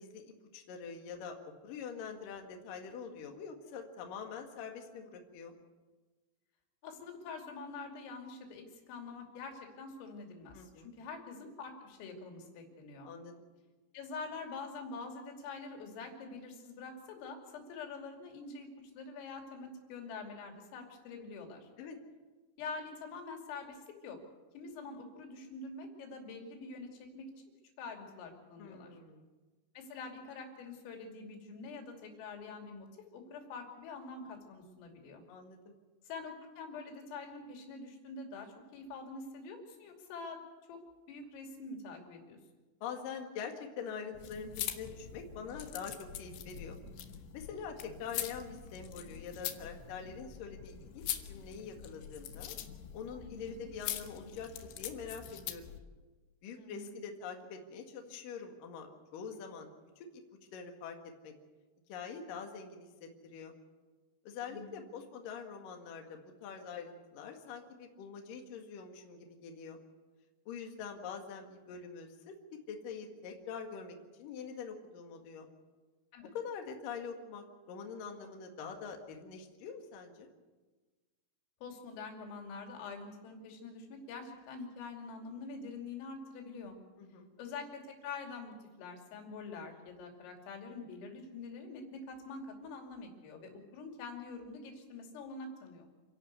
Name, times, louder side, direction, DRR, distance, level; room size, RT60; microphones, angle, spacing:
voice 1, 0.0-1.3 1.6-5.5 10.5-10.9 13.0-13.3 21.8-22.0 28.6-29.3 35.3-35.7 42.8-46.8 47.3-52.6 52.9-55.7 56.4-59.7 60.0-60.2 60.5-61.0 61.2-61.3 61.9-63.5 64.2-69.8 70.5-72.4 72.7-75.5 76.3-80.3 87.0-87.3, left 6 dB, 55° left, 3 dB, 2.9 m, -45 dB
voice 2, 6.8-13.1 13.9-18.7 19.0-21.7 22.6-24.2 24.6-26.9 27.2-27.3 27.8-29.0 29.8-32.9 33.1-35.2 36.1-40.4 40.7-40.8 41.1-42.4 53.2-53.6 56.6-57.0 64.5-64.9 76.1-76.3 81.6-86.8 87.4-95.9, left 4 dB, 85° left, 2 dB, 5.4 m, -45 dB
sound 1, 44.1-55.8, left 11 dB, 70° left, 3.1 m, -43 dB
28.5 x 11.5 x 8.2 m, 1.3 s
omnidirectional pair, 5.8 m